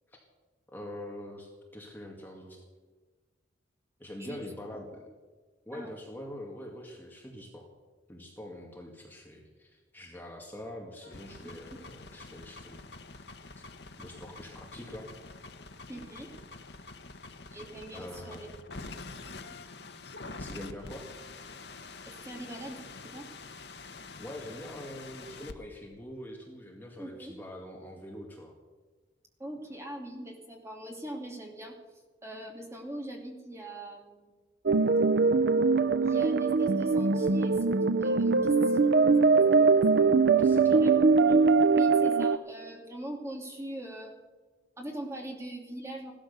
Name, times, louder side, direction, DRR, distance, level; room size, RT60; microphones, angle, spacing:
voice 1, 0.7-2.6 4.0-5.0 5.7-7.7 8.1-12.9 14.0-15.1 17.9-18.4 20.4-21.1 24.2-28.5 40.2-40.9, left 1 dB, 10° left, 0 dB, 2.0 m, -44 dB
sound 1, 11.0-25.5, left 3 dB, 55° left, 1.1 m, -46 dB
voice 2, 15.9-16.3 17.5-18.5 19.1-19.5 22.1-22.8 23.1-23.2 27.0-27.4 29.4-34.3 36.0-37.7 38.0-39.2 40.3-40.5 40.8-40.9 41.2-41.4 41.7-44.2 44.8-46.1, right 1 dB, 15° right, 1 dB, 2.5 m, -42 dB
sound 2, 34.7-42.4, right 4 dB, 60° right, 0.5 m, -22 dB
16.5 x 12.5 x 6.8 m, 1.3 s
head